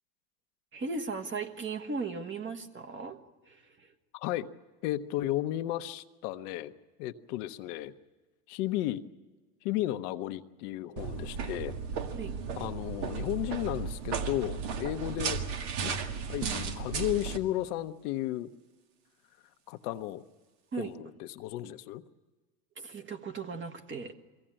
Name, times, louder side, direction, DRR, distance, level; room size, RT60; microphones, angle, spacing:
voice 1, 0.7-3.2 3.4-3.9 12.1-12.4 20.7-20.9 22.8-24.1, right 4 dB, 25° right, 5 dB, 1.4 m, -37 dB
voice 2, 4.1-4.5 4.8-6.7 7.0-7.9 8.5-9.0 9.6-11.7 12.6-15.4 15.8-15.9 16.3-18.5 19.7-20.2 20.8-22.0, left 14 dB, 70° left, 9 dB, 1.0 m, -34 dB
sound 1, 11.0-17.4, right 6 dB, 60° right, 1.9 m, -35 dB
23.0 x 16.5 x 8.8 m, 1.3 s
supercardioid pair, 115°, 47 cm